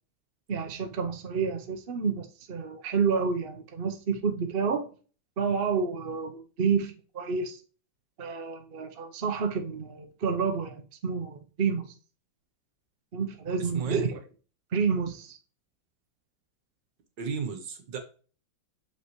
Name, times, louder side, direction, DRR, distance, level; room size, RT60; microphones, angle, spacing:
voice 1, 0.5-4.9 5.4-7.6 8.2-11.9 13.1-14.2 14.7-15.4, right 5 dB, 45° right, 0.7 m, -29 dB
voice 2, 13.6-14.0 17.2-18.0, right 6 dB, 65° right, 1.8 m, -34 dB
6.9 x 5.5 x 3.1 m
omnidirectional pair, 2.1 m